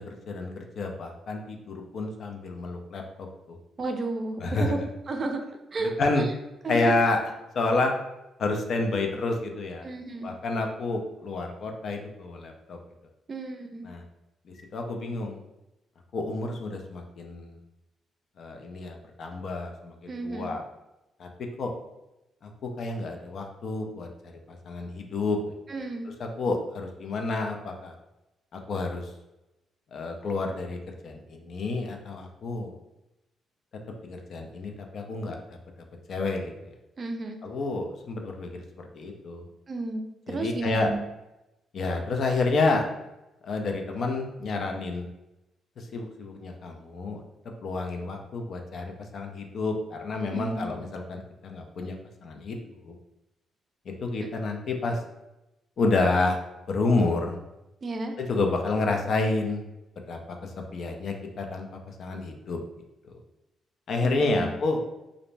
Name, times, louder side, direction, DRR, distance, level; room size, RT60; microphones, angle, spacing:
voice 1, 0.1-3.6 4.4-4.8 5.8-6.2 6.7-7.2 7.5-7.9 8.4-9.9 10.2-12.8 13.8-14.0 14.7-15.4 16.1-17.6 18.4-20.6 21.2-21.3 21.6-21.7 22.4-24.1 24.5-25.4 26.2-27.9 28.5-29.1 29.9-32.7 34.0-35.4 36.1-36.5 37.4-38.5 38.9-39.4 40.3-40.9 41.7-42.8 43.4-45.1 45.8-47.2 47.6-48.8 49.1-52.0 52.2-52.6 52.9-53.0 53.9-55.0 55.8-56.4 56.7-57.4 58.2-59.7 60.1-60.2 60.7-62.6 63.9-64.8, left 3 dB, 60° left, 3 dB, 0.4 m, -29 dB
voice 2, 3.8-5.4 5.7-6.3 6.6-6.9 9.8-10.3 13.3-13.9 20.1-20.5 25.7-26.1 37.0-37.4 39.7-41.0 50.3-50.7 54.2-54.3 57.8-58.1 64.0-64.5, right 2 dB, 40° right, 4 dB, 0.4 m, -33 dB
2.5 x 2.0 x 3.2 m, 0.94 s
cardioid pair, 90°, 0 cm